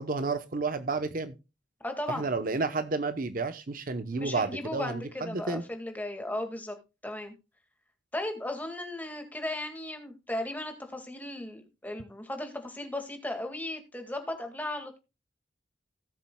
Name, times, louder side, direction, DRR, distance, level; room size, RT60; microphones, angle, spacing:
voice 1, 0.0-1.4 2.1-5.6, right 3 dB, 50° right, 0.9 m, -31 dB
voice 2, 1.8-2.3 4.1-6.8 7.0-7.3 8.1-15.0, left 1 dB, 10° left, 1.9 m, -36 dB
17.5 x 7.4 x 2.3 m
head